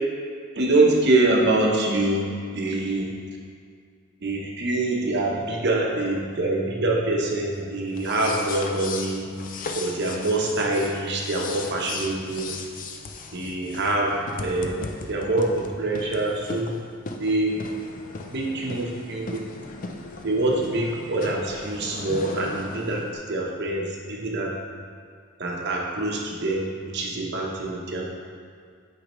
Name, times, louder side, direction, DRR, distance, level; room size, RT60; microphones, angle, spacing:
voice 1, 0.5-3.1 4.2-9.3 9.7-12.5 13.3-16.7 17.2-17.6 18.3-19.4 20.2-24.5 25.4-28.0, right 2 dB, 50° right, -1 dB, 0.9 m, -25 dB
sound 1, 7.9-23.1, left 3 dB, 40° left, 0.4 m, -37 dB
8.3 x 4.9 x 3.1 m, 2.1 s
head